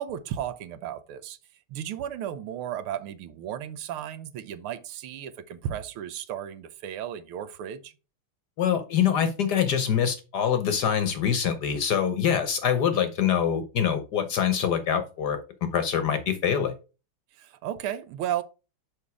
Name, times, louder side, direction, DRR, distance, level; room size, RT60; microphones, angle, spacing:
voice 1, 0.0-1.4 1.7-7.9 17.3-18.4, right 10 dB, 80° right, 1.6 m, -34 dB
voice 2, 8.6-15.4 15.7-16.7, left 8 dB, 60° left, 1.2 m, -24 dB
6.3 x 5.4 x 4.7 m
omnidirectional pair, 2.4 m